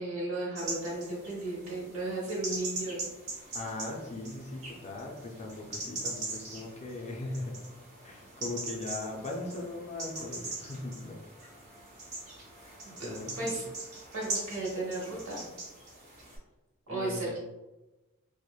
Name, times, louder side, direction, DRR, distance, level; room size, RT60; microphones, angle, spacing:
voice 1, 0.0-3.0 12.8-13.7 14.1-15.5 16.9-17.4, right 2 dB, 65° right, -5 dB, 1.0 m, -35 dB
sound 1, 0.5-16.4, right 2 dB, 30° right, 0.8 m, -41 dB
voice 2, 3.5-7.7 8.0-11.2 13.0-13.6 16.9-17.4, left 2 dB, 30° left, 0 dB, 0.3 m, -39 dB
3.0 x 2.0 x 2.2 m, 1.1 s
head